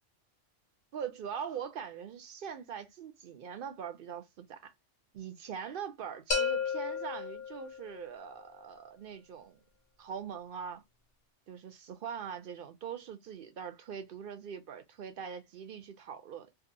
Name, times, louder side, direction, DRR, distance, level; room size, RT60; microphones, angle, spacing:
voice 1, 0.9-4.7 5.1-9.6 10.0-10.8 11.5-16.6, right 7 dB, 60° right, 0.6 m, -42 dB
sound 1, 6.3-8.1, left 5 dB, 50° left, 0.7 m, -33 dB
2.7 x 2.4 x 2.5 m
omnidirectional pair, 1.2 m